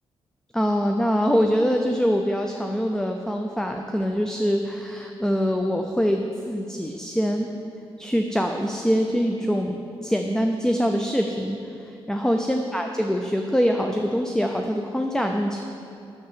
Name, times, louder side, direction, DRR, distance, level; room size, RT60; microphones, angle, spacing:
voice 1, 0.5-7.5 8.0-9.8 10.0-11.6 12.1-15.6, equal, 5° left, 4 dB, 0.6 m, -24 dB
9.5 x 6.7 x 7.6 m, 2.5 s
cardioid pair, 115°, 10 cm